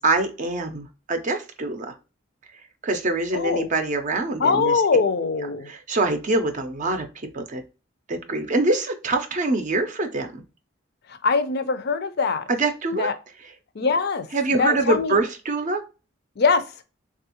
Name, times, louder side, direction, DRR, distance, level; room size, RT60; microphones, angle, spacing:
voice 1, 0.0-1.9 2.8-4.7 5.7-7.1 7.3-7.6 8.1-10.4 12.5-13.1 14.3-15.8, right 2 dB, 40° right, 0.5 m, -24 dB
voice 2, 3.3-3.7 4.4-5.7 11.2-12.4 13.0-13.1 13.8-14.3 14.6-15.2 16.4-16.6, left 4 dB, 55° left, 0.5 m, -22 dB
3.4 x 2.4 x 2.8 m
head